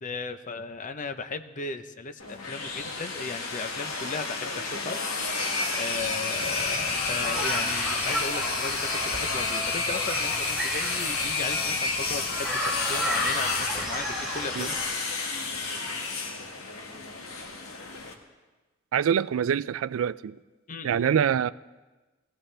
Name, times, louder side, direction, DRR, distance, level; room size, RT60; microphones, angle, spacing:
voice 1, 0.0-14.8 20.7-21.2, left 4 dB, 40° left, 0.7 m, -36 dB
sound 1, 2.2-18.1, left 3 dB, 85° left, 1.6 m, -30 dB
sound 2, 6.3-14.8, right 1 dB, 5° right, 2.8 m, -35 dB
voice 2, 18.9-20.4 20.8-21.5, right 8 dB, 70° right, 0.3 m, -25 dB
19.5 x 15.5 x 3.4 m
head